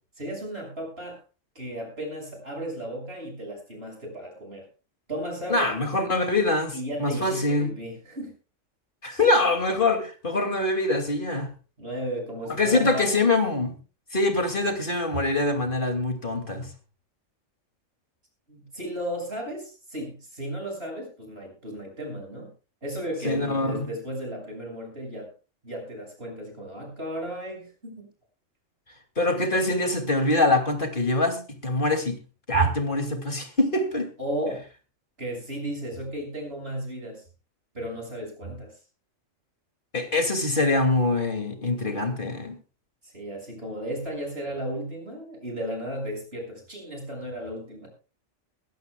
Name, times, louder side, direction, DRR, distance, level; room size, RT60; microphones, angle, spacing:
voice 1, 0.2-1.2 1.6-4.7 5.1-5.8 6.7-8.3 11.8-13.2 18.5-22.5 22.8-25.3 25.6-28.1 32.5-32.6 34.2-34.6 35.2-37.2 37.7-38.8 43.0-47.9, equal, 50° right, 2 dB, 7.0 m, -34 dB
voice 2, 5.5-7.7 9.0-11.5 12.6-13.7 14.1-16.7 23.2-23.9 29.2-32.2 32.5-34.1 39.9-42.6, left 2 dB, 40° left, 5 dB, 2.9 m, -24 dB
21.5 x 16.0 x 2.4 m, 0.33 s
omnidirectional pair, 1.4 m